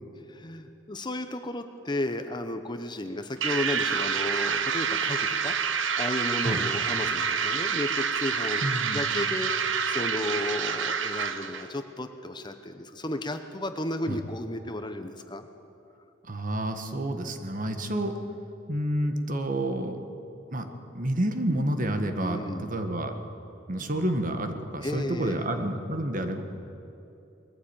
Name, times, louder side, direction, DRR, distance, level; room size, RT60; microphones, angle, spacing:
voice 1, 0.3-5.6 6.0-8.6 8.9-9.5 9.9-15.4 22.2-22.7 24.8-25.5, left 1 dB, 25° left, 8 dB, 1.0 m, -33 dB
sound 1, 3.4-11.7, right 6 dB, 85° right, 1.1 m, -28 dB
voice 2, 8.6-9.0 14.1-14.2 16.2-18.1 18.7-20.0 20.5-20.7 20.9-23.1 23.7-26.4, right 1 dB, 45° right, 6 dB, 1.6 m, -29 dB
21.0 x 14.5 x 9.0 m, 2.8 s
head